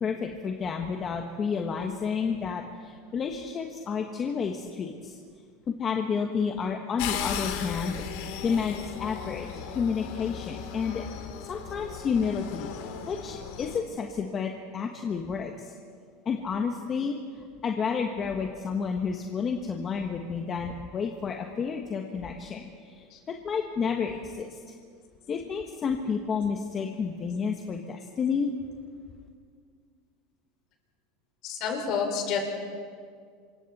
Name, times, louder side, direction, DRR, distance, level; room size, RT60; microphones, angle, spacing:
voice 1, 0.0-5.2 5.7-8.0 8.4-9.5 9.7-11.0 11.4-12.7 13.1-15.7 16.2-24.7 25.3-28.5, left 6 dB, 30° left, 3 dB, 1.4 m, -30 dB
sound 1, 7.0-13.8, left 8 dB, 70° left, 2.4 m, -36 dB
voice 2, 31.4-32.4, left 6 dB, 55° left, 2 dB, 5.3 m, -29 dB
27.5 x 24.0 x 4.3 m, 2.1 s
supercardioid pair, 125°, 0 cm